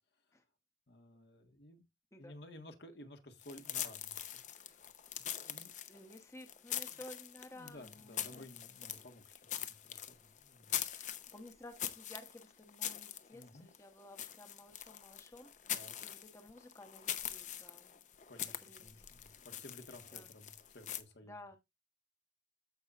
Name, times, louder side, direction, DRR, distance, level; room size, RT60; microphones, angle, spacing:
voice 1, 0.9-1.8 2.2-4.9 5.1-5.7 6.9-7.0 7.5-10.8 13.3-13.7 15.7-15.9 18.3-21.4, left 1 dB, 60° left, 1.4 m, -55 dB
sound 1, 3.4-21.0, left 10 dB, 40° left, 0.7 m, -43 dB
voice 2, 5.9-8.4 11.3-17.9 18.7-19.1 20.1-20.3 21.3-21.6, left 1 dB, 15° left, 1.0 m, -54 dB
14.0 x 5.5 x 2.4 m
head